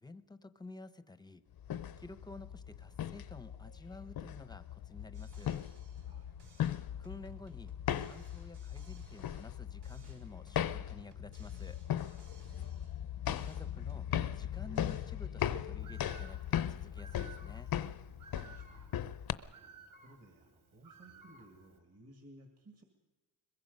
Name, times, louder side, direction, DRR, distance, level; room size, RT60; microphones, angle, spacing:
voice 1, 0.0-1.4 2.0-5.6 7.0-7.7 8.0-11.8 13.3-14.1 14.3-17.7, left 3 dB, 10° left, 12 dB, 0.7 m, -51 dB
sound 1, 1.6-19.3, left 10 dB, 65° left, 0.7 m, -38 dB
sound 2, 5.1-6.1 6.4-9.6 9.8-13.0 13.3-15.6, right 2 dB, 90° right, 4.3 m, -62 dB
voice 2, 5.9-6.4 12.1-12.7 18.2-19.3 19.5-22.8, right 1 dB, 40° right, 3 dB, 2.0 m, -60 dB
Bird, 15.8-21.8, right 5 dB, 60° right, 3.7 m, -57 dB
22.5 x 21.5 x 5.4 m, 1.2 s
wide cardioid pair, 150°, 39 cm